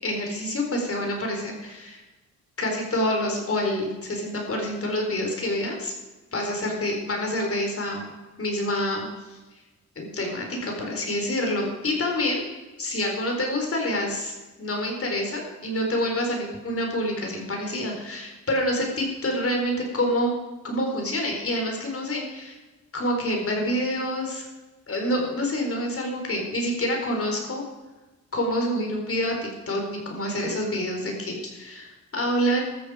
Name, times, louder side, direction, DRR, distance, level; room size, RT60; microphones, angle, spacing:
voice 1, 0.0-2.0 2.6-5.9 6.3-8.1 8.4-9.6 10.0-12.4 12.8-20.3 20.6-22.6 22.9-24.5 24.9-27.6 28.3-32.6, left 1 dB, 50° left, 1 dB, 4.3 m, -27 dB
15.5 x 13.0 x 5.0 m, 1.2 s
wide cardioid pair, 115°, 29 cm